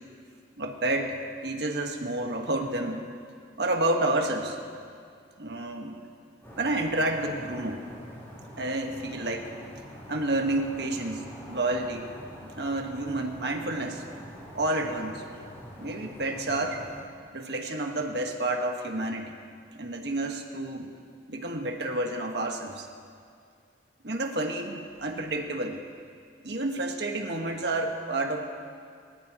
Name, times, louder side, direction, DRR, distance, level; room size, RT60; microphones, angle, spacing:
voice 1, 0.6-3.0 3.6-4.6 5.4-6.0 6.6-7.8 8.6-9.5 10.1-12.1 12.4-14.1 14.5-15.2 15.8-16.8 17.3-19.4 19.7-21.0 21.3-22.9 24.0-25.8 26.4-28.4, right 2 dB, 65° right, 3 dB, 1.6 m, -30 dB
sound 1, 6.4-17.0, equal, 15° left, 3.9 m, -45 dB
27.5 x 14.5 x 3.1 m, 2.3 s
head